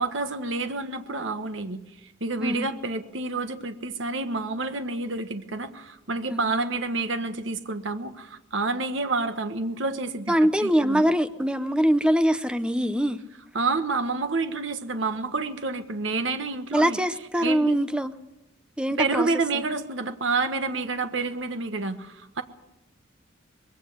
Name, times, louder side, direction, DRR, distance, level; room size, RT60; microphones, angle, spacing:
voice 1, 0.0-11.0 13.5-17.0 17.4-17.7 19.0-22.4, right 3 dB, 70° right, 1.4 m, -29 dB
voice 2, 10.3-13.2 16.7-18.1 18.8-19.3 19.5-19.6, equal, 5° right, 0.8 m, -23 dB
21.0 x 16.5 x 8.0 m
head